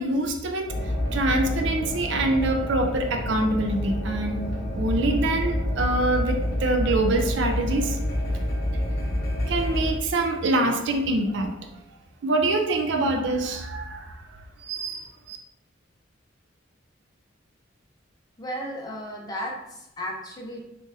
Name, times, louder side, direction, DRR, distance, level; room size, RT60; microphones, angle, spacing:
voice 1, 0.0-4.4 4.7-8.0 9.5-11.5 12.2-14.3 14.6-15.4, right 2 dB, 60° right, 4 dB, 0.4 m, -25 dB
sound 1, 0.7-9.9, left 1 dB, 50° left, 0.8 m, -28 dB
voice 2, 18.4-20.6, equal, 20° left, -1 dB, 0.6 m, -34 dB
3.9 x 2.5 x 2.5 m, 0.89 s
head